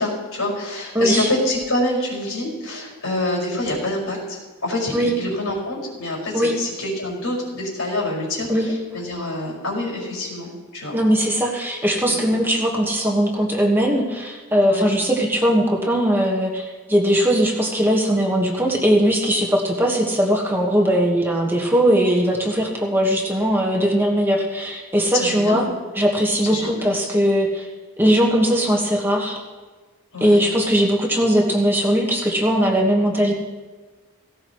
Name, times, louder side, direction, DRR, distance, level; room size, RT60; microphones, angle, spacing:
voice 1, 0.0-11.0 12.1-12.3 14.7-14.9 25.1-25.7 26.5-26.8 30.1-30.4, left 1 dB, 75° left, -3 dB, 5.7 m, -26 dB
voice 2, 0.9-1.3 4.9-5.1 6.3-6.5 8.5-8.7 10.9-25.6 25.9-27.7 28.0-29.4 30.2-33.3, equal, 10° right, -2 dB, 1.5 m, -19 dB
17.5 x 17.0 x 3.2 m, 1.3 s
head